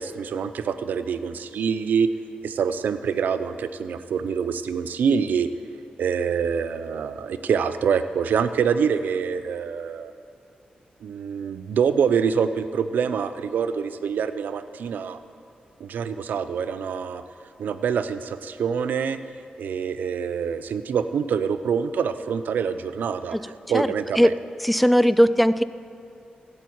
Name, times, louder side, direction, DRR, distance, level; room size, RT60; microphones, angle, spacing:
voice 1, 0.0-2.1 2.4-5.5 6.0-10.1 11.0-15.2 15.8-17.2 17.6-19.2 19.6-23.4 23.7-24.3, right 6 dB, 90° right, 11 dB, 0.5 m, -25 dB
voice 2, 24.6-25.6, equal, ahead, 15 dB, 0.4 m, -18 dB
16.0 x 8.0 x 4.7 m, 2.7 s
cardioid pair, 65°, 3 cm